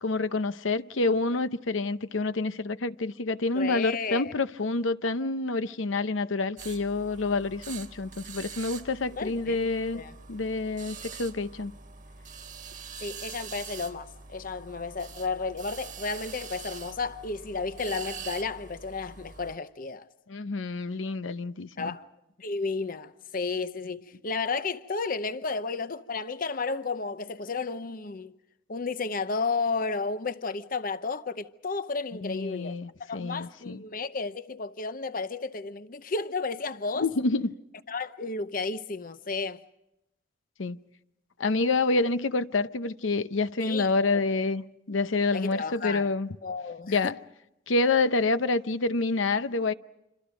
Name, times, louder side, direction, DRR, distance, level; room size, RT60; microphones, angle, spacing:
voice 1, 0.0-10.0 10.3-11.7 20.3-21.9 32.2-33.8 37.0-37.5 40.6-40.8 41.4-46.4 46.9-47.1 47.7-49.7, left 3 dB, 80° left, 0.8 m, -28 dB
voice 2, 3.5-4.3 9.2-9.6 9.9-10.1 13.0-20.1 21.8-22.1 22.4-28.3 28.7-37.1 37.9-39.6 43.6-44.2 45.3-46.1 46.4-47.2, left 4 dB, 45° left, 0.8 m, -32 dB
sound 1, 6.6-19.6, right 6 dB, 40° right, 1.5 m, -44 dB
27.5 x 26.0 x 5.2 m
head